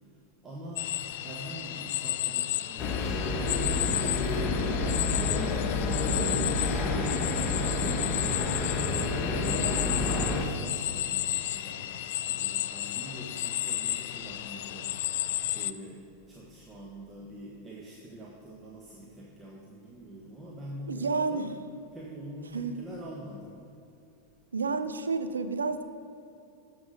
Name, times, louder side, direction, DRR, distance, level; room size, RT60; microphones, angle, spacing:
voice 1, 0.4-0.9 1.2-6.1 6.5-7.7 8.4-11.2 11.5-11.9 12.3-14.9 15.5-16.0 16.3-21.5 21.9-23.5, right 1 dB, 20° right, -3 dB, 1.3 m, -44 dB
sound 1, 0.8-15.7, left 14 dB, 55° left, 0.4 m, -33 dB
sound 2, 2.8-10.5, left 3 dB, 30° left, 1.2 m, -29 dB
voice 2, 6.2-6.6 20.9-21.5 22.5-22.8 24.5-25.8, right 4 dB, 75° right, 10 dB, 0.6 m, -31 dB
13.5 x 5.8 x 5.1 m, 2.7 s
figure-of-eight pair, 90°, 0 cm